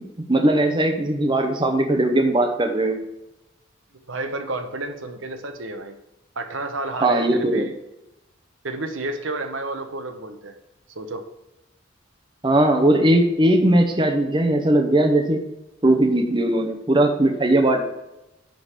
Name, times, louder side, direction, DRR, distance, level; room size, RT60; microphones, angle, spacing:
voice 1, 0.3-3.0 7.0-7.6 12.4-15.4 15.8-17.8, right 1 dB, 25° right, 4 dB, 1.0 m, -19 dB
voice 2, 4.1-6.0 6.3-7.7 8.6-10.6 10.9-11.2, right 2 dB, 80° right, 6 dB, 1.1 m, -30 dB
10.5 x 4.0 x 6.6 m, 0.93 s
head